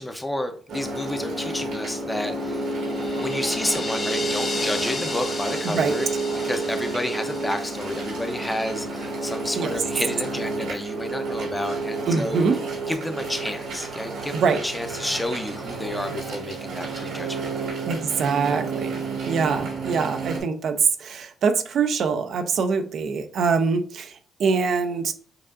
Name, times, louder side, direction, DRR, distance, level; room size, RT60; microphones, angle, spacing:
voice 1, 0.0-2.6 3.2-6.1 6.4-12.4 12.9-14.4 14.6-17.5, left 1 dB, 10° left, 6 dB, 0.7 m, -30 dB
sound 1, 0.7-20.4, right 3 dB, 90° right, 1.9 m, -30 dB
sound 2, 2.5-8.7, left 3 dB, 35° left, 1.2 m, -35 dB
voice 2, 5.6-6.2 9.5-9.7 12.1-12.6 14.3-14.7 17.9-25.1, right 5 dB, 65° right, 7 dB, 0.5 m, -24 dB
6.6 x 2.5 x 2.5 m, 0.43 s
cardioid pair, 90°, 0 cm